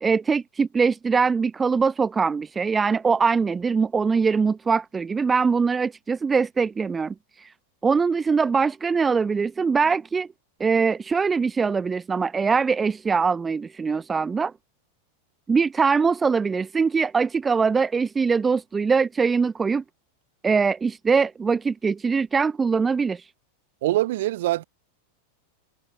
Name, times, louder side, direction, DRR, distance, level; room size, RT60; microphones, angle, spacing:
voice 1, 0.0-7.5 7.8-10.3 10.6-14.5 15.5-19.8 20.4-23.2, right 5 dB, 15° right, 1.1 m, -22 dB
voice 2, 23.8-24.6, right 16 dB, 55° right, 6.9 m, -23 dB
figure-of-eight pair, 90°, 0 cm